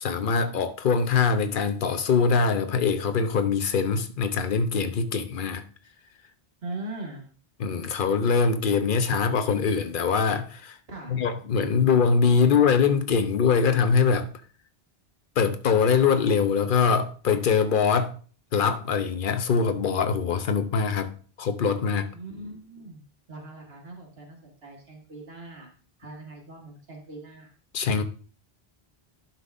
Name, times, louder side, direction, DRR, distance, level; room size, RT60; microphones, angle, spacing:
voice 1, 0.0-5.6 7.6-10.8 11.1-14.3 15.4-18.1 18.5-22.1 27.7-28.0, left 5 dB, 60° left, 0.9 m, -23 dB
voice 2, 6.6-7.2 10.9-11.3 22.1-23.0 23.3-25.7 26.0-27.5, right 2 dB, 80° right, 1.9 m, -40 dB
11.5 x 5.8 x 2.6 m
omnidirectional pair, 1.0 m